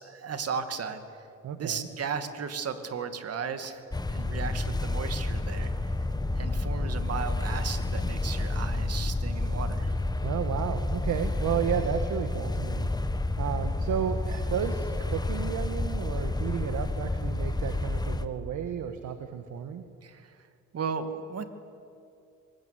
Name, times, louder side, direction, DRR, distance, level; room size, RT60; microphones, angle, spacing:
voice 1, 0.0-1.3 1.6-3.8 4.1-6.0 6.4-10.0 20.0-20.3 20.7-21.4, right 6 dB, 55° right, 9 dB, 2.3 m, -35 dB
voice 2, 1.4-1.9 4.7-4.8 10.2-19.8, right 8 dB, 75° right, 8 dB, 1.6 m, -33 dB
sound 1, 3.9-18.3, left 2 dB, 15° left, 1.3 m, -30 dB
24.0 x 21.0 x 9.5 m, 2.5 s
cardioid pair, 90°, 30 cm